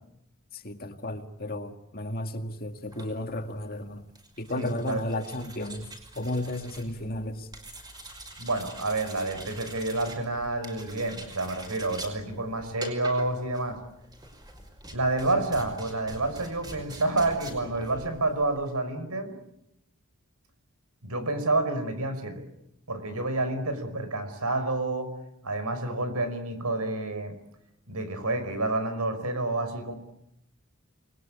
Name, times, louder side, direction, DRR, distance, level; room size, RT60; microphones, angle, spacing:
voice 1, 0.5-4.0 4.4-5.9 6.2-7.5, left 1 dB, 40° left, 2.1 m, -33 dB
sound 1, 2.8-18.8, right 1 dB, 20° right, 5.5 m, -45 dB
voice 2, 4.5-5.0 8.4-13.8 14.9-19.4 21.0-22.4 22.9-25.1 25.4-27.4 27.9-29.9, right 2 dB, 85° right, 5.3 m, -29 dB
29.0 x 21.5 x 8.7 m
head